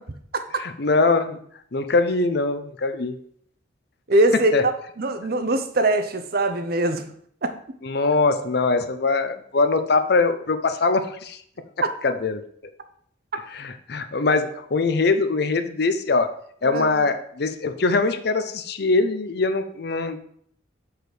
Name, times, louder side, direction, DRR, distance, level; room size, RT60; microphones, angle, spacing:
voice 1, 0.6-1.4 1.7-3.2 4.5-4.7 7.8-11.4 12.0-12.4 13.5-16.3 16.6-20.2, left 3 dB, 55° left, 9 dB, 0.6 m, -22 dB
voice 2, 4.1-4.7 5.0-7.0 7.4-7.5 16.6-17.0, right 2 dB, 50° right, 8 dB, 0.7 m, -22 dB
5.1 x 4.8 x 6.1 m, 0.64 s
head